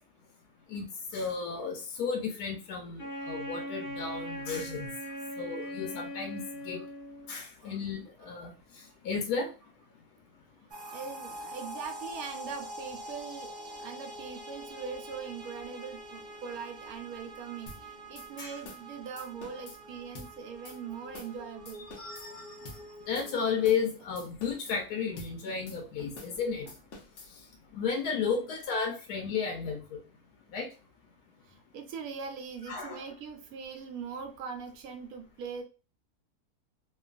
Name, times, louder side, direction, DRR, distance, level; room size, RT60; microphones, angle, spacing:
voice 1, 1.1-4.9 5.4-6.8 7.3-9.5 18.4-18.5 22.0-22.8 23.1-26.7 27.7-30.0 30.5-30.7 32.7-33.0, left 6 dB, 80° left, 2 dB, 1.1 m, -33 dB
Wind instrument woodwind instrument, 3.0-7.3, equal, 20° left, 1.3 m, -40 dB
sound 1, 10.7-23.7, equal, 50° right, 0.5 m, -45 dB
voice 2, 10.8-21.9 22.6-23.0 28.2-28.4 31.4-35.6, right 6 dB, 75° right, 5 dB, 1.1 m, -42 dB
sound 2, 17.7-17.8 18.2-18.3 18.7-18.9 19.2-19.8 20.2-20.3 20.7-20.8 21.1-21.4 21.7-22.3 22.7-22.8 23.2-23.3 23.6-23.9 24.2-24.8 25.2-25.3 25.7-25.8 26.2-26.4 26.7-27.3, left 2 dB, 60° left, 1.0 m, -47 dB
3.0 x 2.3 x 2.4 m, 0.34 s
omnidirectional pair, 1.6 m